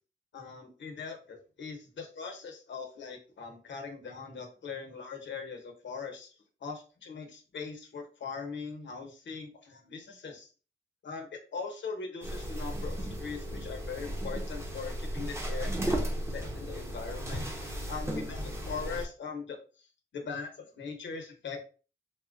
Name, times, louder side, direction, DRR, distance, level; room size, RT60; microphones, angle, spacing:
voice 1, 0.3-6.3 6.6-10.5 11.0-19.6 20.1-21.6, left 5 dB, 85° left, 3 dB, 0.8 m, -41 dB
sound 1, 12.2-19.1, right 1 dB, 15° right, 0.6 m, -35 dB
4.2 x 2.1 x 2.5 m, 0.36 s
wide cardioid pair, 175°, 19 cm